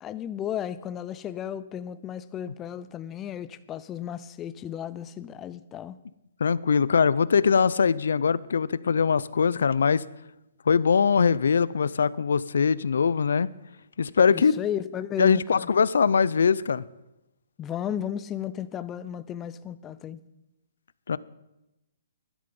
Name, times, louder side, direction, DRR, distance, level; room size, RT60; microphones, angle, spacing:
voice 1, 0.0-6.0 14.3-15.7 17.6-20.2, left 10 dB, 15° left, 0.3 m, -34 dB
voice 2, 6.4-10.0 10.7-13.5 14.0-14.6 15.2-16.8 21.1-21.2, left 6 dB, 75° left, 0.4 m, -22 dB
12.5 x 10.5 x 5.3 m
hypercardioid pair, 170°, 0 cm